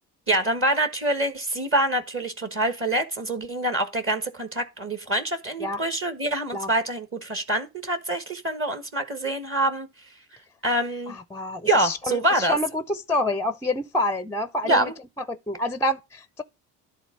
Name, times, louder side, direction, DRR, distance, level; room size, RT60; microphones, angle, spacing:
voice 1, 0.3-9.9 10.6-11.1 11.6-12.6 14.6-14.9, right 1 dB, 35° right, 1.4 m, -25 dB
voice 2, 11.1-14.9 15.3-16.4, left 1 dB, 5° left, 0.5 m, -28 dB
11.0 x 3.7 x 6.4 m
supercardioid pair, 65°, 39 cm